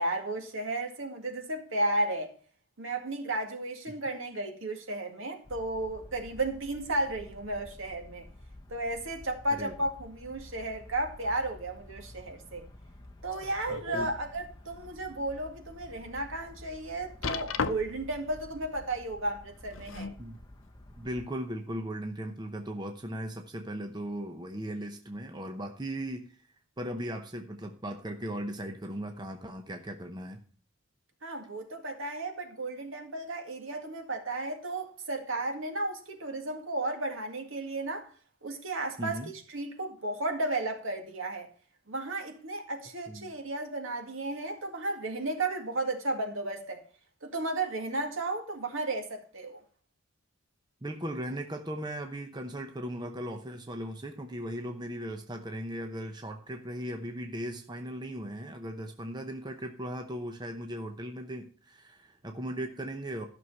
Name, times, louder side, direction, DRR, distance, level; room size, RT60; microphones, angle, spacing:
voice 1, 0.0-2.3 2.8-8.3 8.7-12.7 13.2-20.1 31.2-38.1 38.4-41.5 41.9-46.8 47.2-49.6, right 2 dB, 70° right, 2.1 m, -34 dB
sound 1, 5.4-21.3, left 1 dB, 20° left, 0.9 m, -50 dB
sound 2, 13.3-14.1 14.7-14.8 15.4-15.5 17.2-18.1 19.5-20.2 21.1-21.2, left 5 dB, 70° left, 0.7 m, -35 dB
voice 2, 13.7-14.1 20.2-20.4 21.0-26.3 26.8-30.4 39.0-39.3 43.1-43.3 50.8-63.3, right 1 dB, 20° right, 0.8 m, -37 dB
12.5 x 6.3 x 5.5 m
head